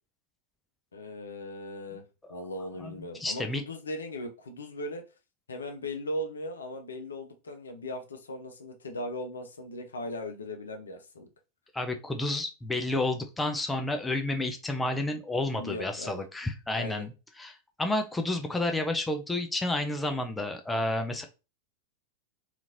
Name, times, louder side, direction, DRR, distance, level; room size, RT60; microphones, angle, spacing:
voice 1, 0.9-2.0 2.3-5.0 5.5-11.3 15.5-16.2 16.7-17.1, left 1 dB, 70° left, 5 dB, 0.6 m, -38 dB
voice 2, 2.8-3.6 11.7-21.2, left 2 dB, 10° left, 5 dB, 0.4 m, -31 dB
2.9 x 2.4 x 2.6 m, 0.30 s
figure-of-eight pair, 90°, 0 cm